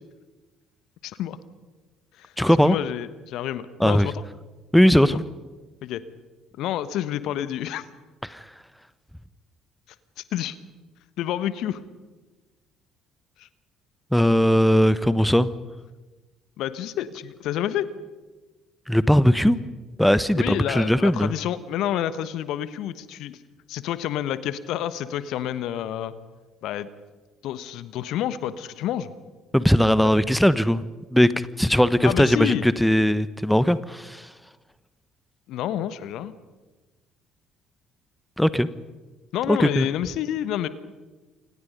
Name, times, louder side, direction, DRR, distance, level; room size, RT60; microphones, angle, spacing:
voice 1, 1.0-1.4 2.2-2.3 2.6-4.2 5.0-5.2 5.8-6.0 6.6-7.8 10.3-10.6 11.2-11.8 13.4-13.5 16.6-17.9 20.4-23.4 23.7-26.1 26.6-26.9 27.4-29.1 30.0-30.1 32.0-32.6 35.5-36.3 39.3-40.7, left 11 dB, 60° left, 14 dB, 1.3 m, -29 dB
voice 2, 2.4-2.8 3.8-4.1 4.7-5.2 8.3-8.4 14.1-15.5 18.9-19.6 20.0-21.3 29.5-30.8 31.1-31.3 31.6-34.3 38.4-38.7 39.5-39.9, equal, 5° left, 15 dB, 1.1 m, -19 dB
29.0 x 26.0 x 5.4 m, 1.2 s
figure-of-eight pair, 50°, 0 cm